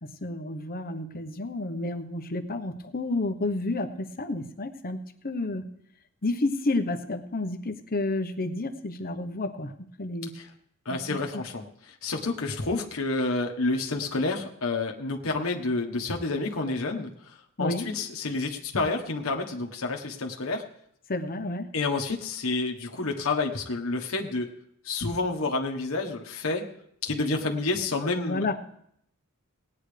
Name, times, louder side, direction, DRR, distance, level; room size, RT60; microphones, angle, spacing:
voice 1, 0.0-5.7 6.2-10.3 10.9-11.2 17.6-17.9 21.1-21.7 28.1-28.5, left 2 dB, 45° left, 7 dB, 1.0 m, -31 dB
voice 2, 10.8-20.6 21.7-24.5 24.8-26.7 27.0-28.5, left 3 dB, 70° left, 2 dB, 1.4 m, -29 dB
19.0 x 9.7 x 3.4 m, 0.71 s
head